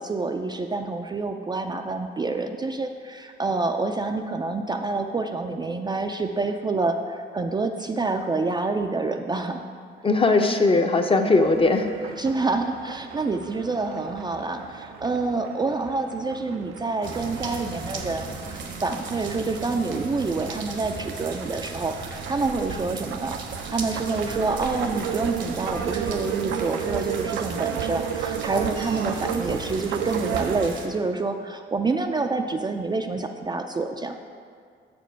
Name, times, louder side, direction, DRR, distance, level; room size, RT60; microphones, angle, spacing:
voice 1, 0.0-9.6 12.2-23.4 23.7-34.2, right 3 dB, 20° right, 5 dB, 0.3 m, -27 dB
voice 2, 10.0-12.1, left 3 dB, 30° left, 6 dB, 0.6 m, -20 dB
sound 1, 11.3-30.7, right 8 dB, 85° right, 0.5 m, -34 dB
sound 2, 17.0-30.9, right 4 dB, 65° right, 0.9 m, -37 dB
6.4 x 5.1 x 5.6 m, 2.1 s
cardioid pair, 90°, 20 cm